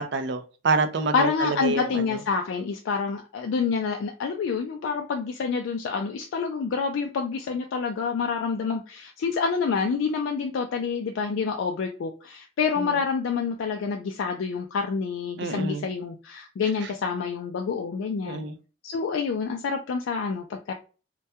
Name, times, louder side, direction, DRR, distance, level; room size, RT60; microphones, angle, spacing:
voice 1, 0.0-1.9 12.8-13.0 15.4-15.8 18.2-18.5, right 3 dB, 55° right, 0.4 m, -27 dB
voice 2, 1.1-18.4 18.8-20.7, left 5 dB, 70° left, 0.3 m, -27 dB
2.2 x 2.2 x 2.6 m
head